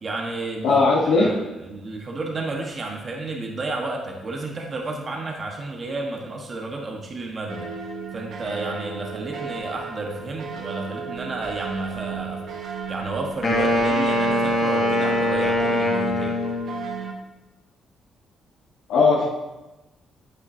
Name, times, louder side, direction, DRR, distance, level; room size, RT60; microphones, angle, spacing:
voice 1, 0.0-7.7 8.1-16.3, right 2 dB, 40° right, 0 dB, 1.3 m, -32 dB
voice 2, 0.6-1.3 18.9-19.3, left 3 dB, 90° left, -6 dB, 1.2 m, -18 dB
sound 1, 7.5-17.1, right 6 dB, 65° right, 1.0 m, -34 dB
Wind instrument woodwind instrument, 13.4-16.9, left 1 dB, 50° left, 2.0 m, -22 dB
8.7 x 8.2 x 2.7 m, 1.1 s
cardioid pair, 90°, 0 cm